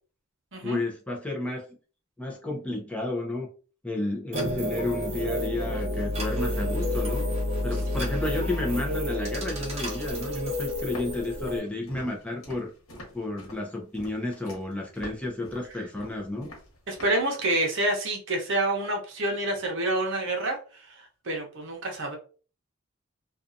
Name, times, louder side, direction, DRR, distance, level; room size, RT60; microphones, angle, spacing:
voice 1, 0.6-1.6 2.2-3.5 3.8-7.2 7.6-12.7 13.1-16.5, left 2 dB, 5° left, -1 dB, 0.5 m, -32 dB
sound 1, 4.3-11.6, left 1 dB, 30° right, 0.9 m, -29 dB
Walk footsteps, 10.9-17.2, equal, 90° left, 1.1 m, -45 dB
voice 2, 16.9-22.2, right 1 dB, 60° right, 2 dB, 0.8 m, -28 dB
2.6 x 2.3 x 2.5 m, 0.37 s
head